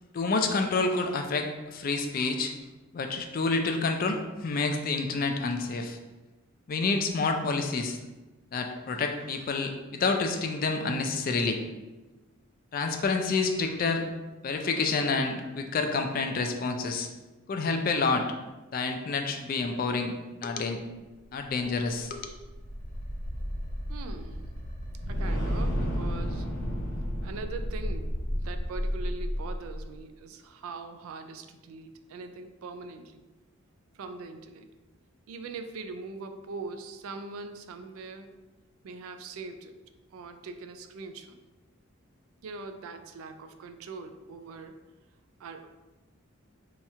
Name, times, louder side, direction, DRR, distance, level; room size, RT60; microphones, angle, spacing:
voice 1, 0.1-2.5 2.9-6.0 6.7-8.0 8.5-11.6 12.7-14.0 14.4-17.1 17.5-18.3 18.7-20.1 20.4-20.8 21.3-22.3, left 4 dB, 40° left, 5 dB, 0.3 m, -28 dB
sound 1, 22.2-29.9, equal, 90° left, 1.1 m, -32 dB
voice 2, 23.9-24.4 25.1-26.5 27.2-33.2 33.9-34.7 35.3-38.3 38.8-39.8 40.1-41.4 42.4-44.8 45.4-45.7, right 3 dB, 75° right, 7 dB, 0.3 m, -42 dB
2.9 x 2.3 x 4.1 m, 1.1 s
head